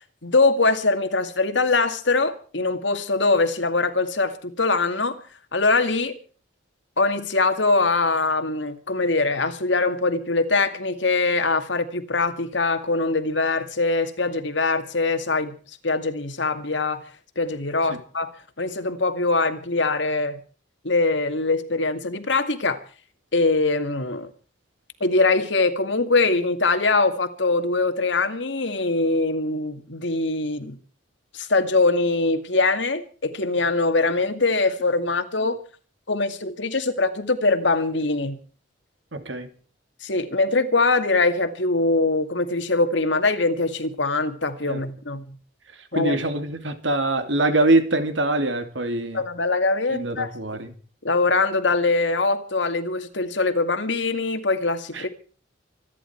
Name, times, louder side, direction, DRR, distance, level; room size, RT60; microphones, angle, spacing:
voice 1, 0.2-5.2 5.5-6.2 7.0-15.6 15.8-17.0 17.4-18.3 18.6-20.4 20.8-22.8 23.3-24.3 25.0-30.8 31.3-35.6 36.1-38.4 40.0-45.4 45.9-46.2 49.1-50.3 51.0-55.1, left 3 dB, 70° left, 2.2 m, -22 dB
voice 2, 39.1-39.5 44.7-44.8 45.9-49.2 49.9-50.7 54.9-55.1, right 2 dB, 70° right, 2.8 m, -23 dB
26.0 x 11.0 x 4.6 m
head